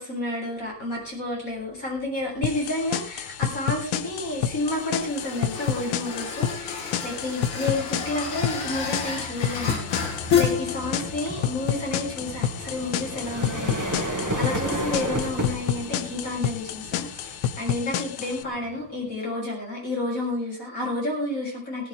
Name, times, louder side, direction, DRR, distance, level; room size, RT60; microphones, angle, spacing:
voice 1, 0.0-21.9, left 2 dB, 20° left, -2 dB, 7.7 m, -30 dB
sound 1, 1.7-2.0 2.4-19.1, right 1 dB, 30° right, 0.3 m, -35 dB
sound 2, 2.4-18.4, left 10 dB, 90° left, 2.8 m, -30 dB
sound 3, 3.7-17.1, left 6 dB, 55° left, 3.7 m, -33 dB
18.0 x 14.0 x 3.6 m, 0.38 s
omnidirectional pair, 4.1 m